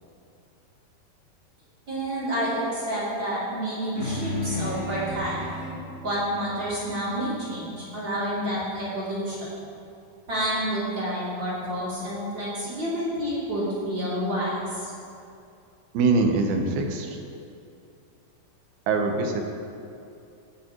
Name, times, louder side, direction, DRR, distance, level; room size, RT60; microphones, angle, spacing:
voice 1, 1.9-5.5 6.0-9.5 10.3-14.9, equal, 30° right, -9 dB, 3.0 m, -29 dB
sound 1, 3.9-8.7, left 1 dB, 40° left, 2.9 m, -35 dB
voice 2, 15.9-17.2 18.9-19.4, right 3 dB, 80° right, 3 dB, 2.9 m, -23 dB
15.5 x 10.5 x 3.0 m, 2.6 s
omnidirectional pair, 4.5 m